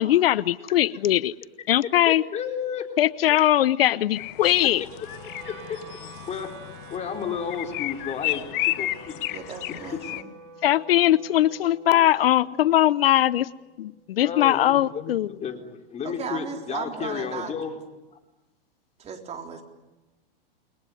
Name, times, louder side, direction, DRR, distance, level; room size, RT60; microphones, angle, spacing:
voice 1, 0.0-1.3 1.7-2.2 3.0-4.8 10.6-13.5 13.8-15.3, left 13 dB, 80° left, 18 dB, 0.9 m, -20 dB
voice 2, 2.1-2.9 5.4-6.5 6.9-9.2 11.9-12.1 14.2-15.1 15.4-17.8, left 7 dB, 25° left, 4 dB, 4.0 m, -32 dB
sound 1, 4.1-10.2, left 17 dB, 55° left, 1.5 m, -33 dB
Wind instrument woodwind instrument, 5.0-15.2, right 4 dB, 60° right, 4.3 m, -48 dB
voice 3, 9.3-10.3 16.0-17.5 19.0-19.6, right 6 dB, 20° right, 3 dB, 3.9 m, -36 dB
29.5 x 22.0 x 9.3 m, 1.1 s
hypercardioid pair, 135°, 29 cm